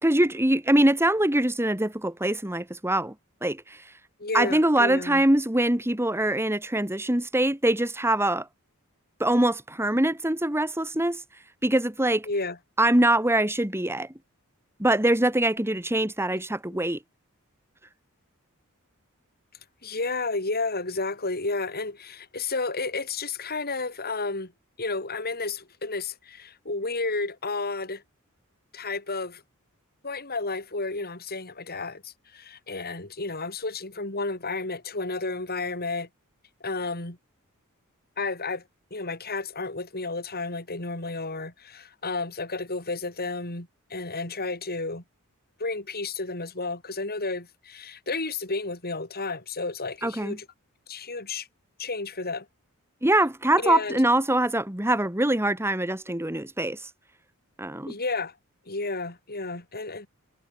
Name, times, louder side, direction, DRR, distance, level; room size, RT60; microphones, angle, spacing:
voice 1, 0.0-3.1 3.4-3.9 4.3-8.5 9.2-11.2 11.6-12.3 12.8-14.1 14.8-17.0 50.0-50.4 53.0-56.9 57.6-57.9, right 1 dB, 10° right, 2.3 m, -23 dB
voice 2, 4.2-5.2 12.2-12.6 19.8-24.5 24.8-28.0 28.7-29.4 30.0-36.1 36.6-37.2 38.2-38.6 38.9-45.0 45.6-50.5 50.9-51.5 51.8-52.5 53.6-54.0 57.9-58.4 58.6-60.1, left 3 dB, 45° left, 6.7 m, -32 dB
head